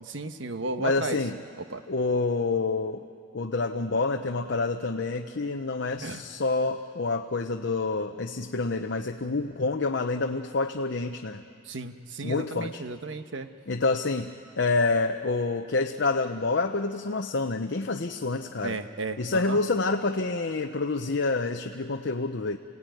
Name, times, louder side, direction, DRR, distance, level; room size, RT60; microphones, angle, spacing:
voice 1, 0.1-1.2 1.7-1.8 6.0-6.2 11.7-13.5 18.6-19.6, right 3 dB, 75° right, 8 dB, 1.2 m, -34 dB
voice 2, 0.8-1.4 1.9-3.1 3.3-11.4 12.2-12.8 13.7-14.3 14.6-18.8 19.2-22.6, left 3 dB, 65° left, 5 dB, 0.8 m, -27 dB
29.0 x 17.5 x 9.3 m, 2.5 s
head